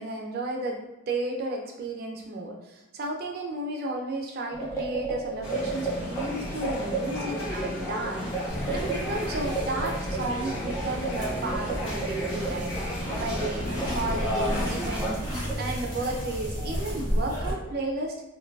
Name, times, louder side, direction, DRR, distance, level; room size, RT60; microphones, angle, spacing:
voice 1, 0.0-18.1, right 2 dB, 45° right, 1 dB, 0.4 m, -33 dB
sound 1, 4.5-17.6, right 3 dB, 15° left, 0.4 m, -36 dB
sound 2, 5.4-15.1, left 1 dB, 70° left, 0.7 m, -34 dB
sound 3, 8.5-17.5, equal, 40° left, 1.2 m, -33 dB
2.5 x 2.3 x 2.2 m, 0.96 s
head